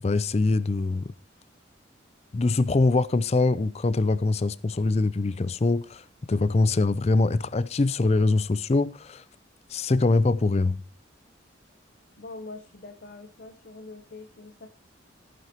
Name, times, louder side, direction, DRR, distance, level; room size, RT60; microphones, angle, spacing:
voice 1, 0.0-1.1 2.3-9.2 9.7-10.8, left 3 dB, 30° left, 0.4 m, -23 dB
voice 2, 12.2-14.7, left 2 dB, 55° left, 0.8 m, -43 dB
14.5 x 9.4 x 2.9 m
head